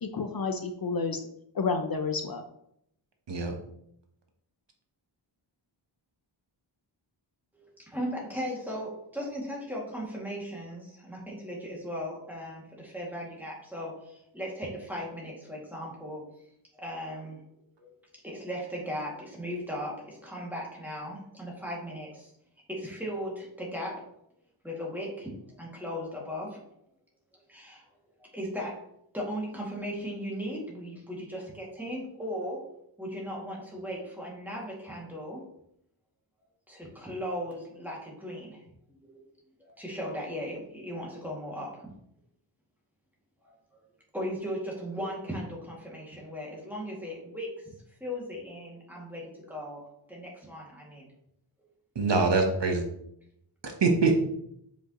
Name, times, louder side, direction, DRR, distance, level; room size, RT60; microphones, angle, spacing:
voice 1, 0.0-1.2 1.5-2.4, left 4 dB, 50° left, 6 dB, 0.7 m, -30 dB
voice 2, 7.5-16.2 16.8-17.4 17.8-17.9 18.2-22.3 22.7-24.1 24.6-25.3 25.6-26.6 27.5-27.8 28.2-28.8 29.1-32.6 33.0-35.4 36.7-38.6 38.9-39.2 39.6-41.9 43.4-43.6 44.1-47.7 48.0-51.1 51.6-51.7, equal, 5° right, -4 dB, 2.2 m, -37 dB
voice 3, 51.9-52.8 53.6-54.2, right 3 dB, 60° right, 3 dB, 1.1 m, -24 dB
7.3 x 5.2 x 3.0 m, 0.74 s
wide cardioid pair, 115°, 47 cm